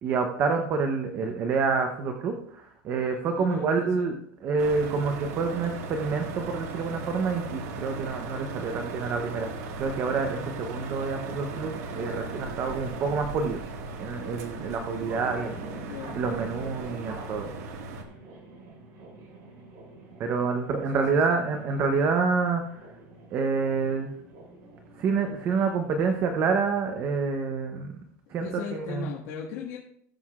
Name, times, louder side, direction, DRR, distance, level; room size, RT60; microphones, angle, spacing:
voice 1, 0.0-4.1 4.4-13.6 14.0-15.6 16.1-17.5 20.2-22.6 23.3-24.1 25.0-27.9 28.3-29.1, right 5 dB, 25° right, 4 dB, 0.8 m, -27 dB
voice 2, 3.4-4.1 15.9-16.2 20.9-21.5 28.4-29.8, left 6 dB, 55° left, -2 dB, 1.6 m, -38 dB
sound 1, 4.6-18.0, right 3 dB, 65° right, 1.8 m, -37 dB
sound 2, 11.5-27.0, right 3 dB, 45° right, 3.2 m, -46 dB
17.5 x 7.7 x 2.5 m, 0.72 s
supercardioid pair, 175°, 9 cm